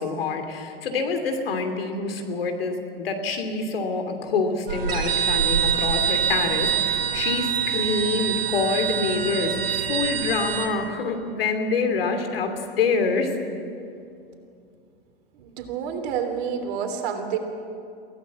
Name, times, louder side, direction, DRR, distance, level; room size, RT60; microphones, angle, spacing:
voice 1, 0.0-12.5 12.8-13.3, left 4 dB, 70° left, 5 dB, 2.8 m, -26 dB
sound 1, 4.7-10.7, right 8 dB, 75° right, 2.8 m, -25 dB
voice 2, 15.3-17.4, right 7 dB, 55° right, 5 dB, 3.3 m, -29 dB
23.5 x 16.0 x 7.4 m, 2.5 s
hypercardioid pair, 95°, 30 cm